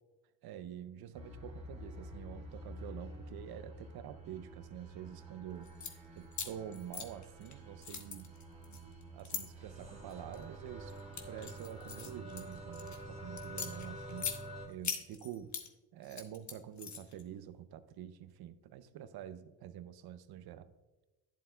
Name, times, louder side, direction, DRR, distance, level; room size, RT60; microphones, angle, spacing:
voice 1, 0.4-5.7 6.1-8.3 8.7-8.8 9.1-11.0 11.3-14.4 14.7-15.5 15.9-20.7, right 10 dB, 60° right, 13 dB, 0.7 m, -47 dB
sound 1, 1.1-14.7, right 1 dB, 15° right, 2.5 m, -48 dB
sound 2, 5.6-5.9 6.3-7.5 7.8-9.4 10.1-10.4 10.9-13.0 13.4-14.4 14.8-15.7 16.0-17.2, left 6 dB, 40° left, 1.2 m, -41 dB
11.5 x 7.4 x 2.3 m, 1.1 s
supercardioid pair, 70°, 43 cm